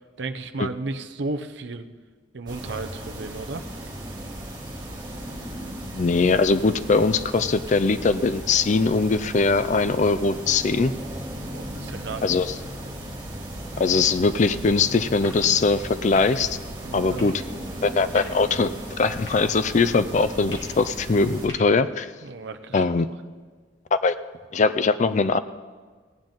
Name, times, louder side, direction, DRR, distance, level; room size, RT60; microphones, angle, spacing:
voice 1, 0.2-1.9 2.3-3.6 11.4-12.4 16.8-17.3 22.2-23.1, right 3 dB, 65° right, 7 dB, 0.7 m, -34 dB
sound 1, 2.5-21.5, right 1 dB, 20° right, 2.7 m, -36 dB
voice 2, 5.9-10.9 12.2-12.5 13.8-16.6 16.9-17.3 17.8-18.7 19.0-22.1 22.7-23.1 23.9-24.2 24.5-25.4, left 4 dB, 40° left, 12 dB, 0.4 m, -21 dB
sound 2, 15.1-22.0, left 1 dB, 65° left, 2.4 m, -46 dB
17.5 x 8.9 x 3.9 m, 1.5 s
head